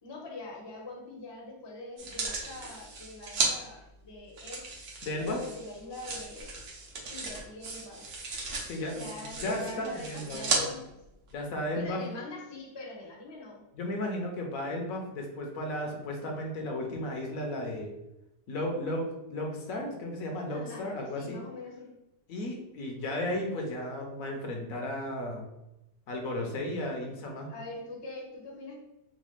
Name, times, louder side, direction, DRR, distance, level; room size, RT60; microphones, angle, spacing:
voice 1, 0.0-4.6 5.2-6.6 7.1-8.0 8.8-10.9 11.7-13.6 20.5-21.9 27.5-28.8, left 2 dB, 25° left, -2 dB, 0.6 m, -43 dB
sound 1, 2.0-3.5 4.4-10.6 11.3-11.4, right 3 dB, 55° right, 0.8 m, -35 dB
voice 2, 5.0-5.4 8.6-9.1 9.4-10.4 11.3-12.1 13.7-17.9 18.5-21.4 22.3-25.5 26.1-27.5, left 1 dB, 70° left, 2 dB, 1.1 m, -34 dB
4.0 x 2.2 x 3.1 m, 0.91 s
omnidirectional pair, 1.6 m